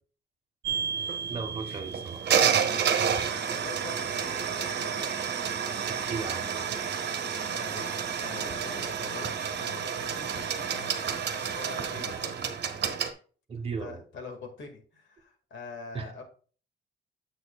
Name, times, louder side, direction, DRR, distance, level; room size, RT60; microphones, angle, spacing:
sound 1, 0.6-13.1, right 7 dB, 60° right, 1.1 m, -30 dB
voice 1, 1.3-2.4 5.9-6.8 13.5-14.0 15.9-16.2, right 4 dB, 30° right, 1.3 m, -37 dB
voice 2, 3.3-5.3 7.5-12.5 13.5-16.2, left 4 dB, 70° left, 2.1 m, -45 dB
9.0 x 7.9 x 2.4 m
wide cardioid pair, 175°, 20 cm